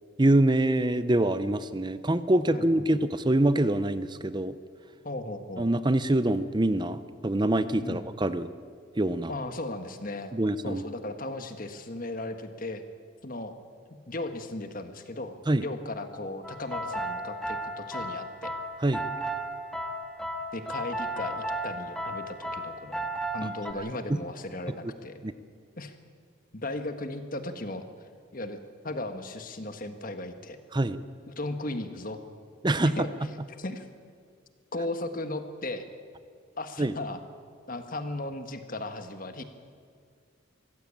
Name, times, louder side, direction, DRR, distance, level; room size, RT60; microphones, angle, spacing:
voice 1, 0.2-4.5 5.6-8.5 8.9-9.3 10.3-10.8 15.5-15.6 18.8-19.1 23.4-23.5 25.2-25.3 30.7-31.0 32.6-33.1 36.8-36.9, right 1 dB, 20° right, 13 dB, 0.6 m, -25 dB
voice 2, 2.5-2.9 5.0-5.7 7.8-8.1 9.3-10.3 10.6-12.8 13.2-13.5 14.1-18.5 20.5-23.0 23.3-25.1 25.8-25.9 26.5-27.8 28.3-28.6 28.8-30.6 31.3-32.2 32.8-33.1 33.6-33.9 34.7-35.8 36.6-37.2 37.7-39.4, left 2 dB, 40° left, 8 dB, 1.6 m, -36 dB
sound 1, 16.4-23.7, right 1 dB, ahead, 1.7 m, -34 dB
23.5 x 15.5 x 8.6 m, 2.1 s
head